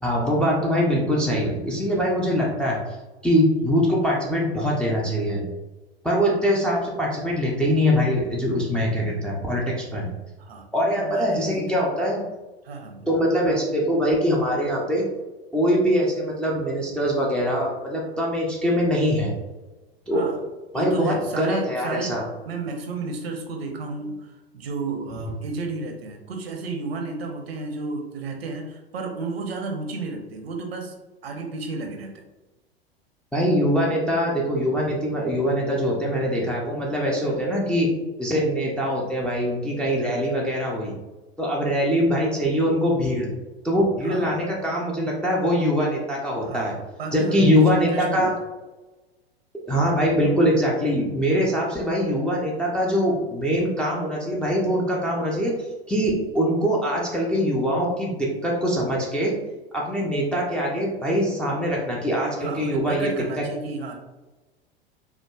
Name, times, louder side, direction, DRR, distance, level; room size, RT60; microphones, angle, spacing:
voice 1, 0.0-2.8 3.2-5.5 6.0-10.1 10.7-12.3 13.1-15.0 15.5-19.3 20.1-20.2 20.7-22.2 33.3-37.9 38.2-40.9 41.4-43.3 43.6-46.7 47.1-48.3 49.7-55.5 55.9-59.3 59.7-63.1, equal, 5° left, -4 dB, 0.3 m, -23 dB
voice 2, 10.9-11.7 12.6-13.1 20.1-20.4 20.7-22.2 22.5-30.9 31.2-32.3 44.0-44.4 46.4-48.3 62.4-63.9, right 3 dB, 70° right, 3 dB, 0.7 m, -32 dB
4.4 x 2.1 x 2.2 m, 1.1 s
figure-of-eight pair, 90°, 31 cm